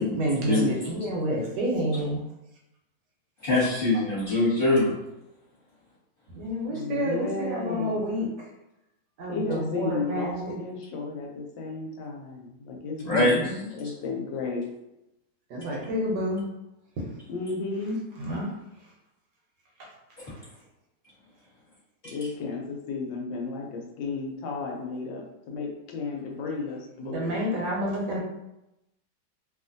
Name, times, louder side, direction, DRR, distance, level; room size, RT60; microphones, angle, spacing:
voice 1, 0.0-2.2 6.3-8.3 9.2-10.5 13.0-13.6 15.5-16.4 17.0-17.1 18.2-18.5 20.2-20.4 27.0-28.2, equal, 70° right, -2 dB, 1.2 m, -29 dB
voice 2, 3.4-4.9 13.1-13.4 22.0-22.1, left 2 dB, 35° left, -9 dB, 1.3 m, -23 dB
voice 3, 6.7-8.0 9.3-13.4 13.8-14.7 17.3-18.0 22.1-27.6, left 4 dB, 85° left, 0 dB, 1.3 m, -33 dB
2.9 x 2.4 x 2.5 m, 0.88 s
omnidirectional pair, 2.0 m